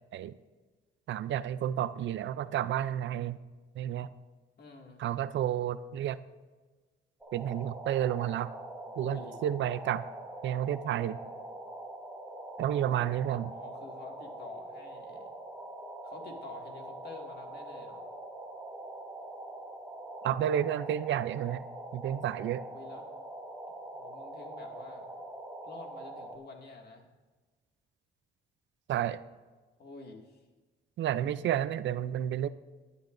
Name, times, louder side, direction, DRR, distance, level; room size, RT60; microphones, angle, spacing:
voice 1, 1.1-3.4 3.8-4.1 5.0-6.2 7.3-8.5 9.0-10.0 10.4-11.2 12.6-13.5 20.2-21.7 21.9-22.6 28.9-29.2 31.0-32.5, right 11 dB, 70° right, 15 dB, 0.5 m, -31 dB
voice 2, 4.6-5.0 9.0-9.4 13.0-13.1 13.5-15.3 16.0-18.0 22.6-23.1 23.9-25.1 25.6-27.1 29.8-30.4, left 3 dB, 55° left, 1 dB, 2.2 m, -48 dB
sound 1, 7.2-26.4, right 1 dB, 5° right, 2.3 m, -44 dB
19.0 x 11.0 x 2.6 m, 1.3 s
cardioid pair, 90°, 20 cm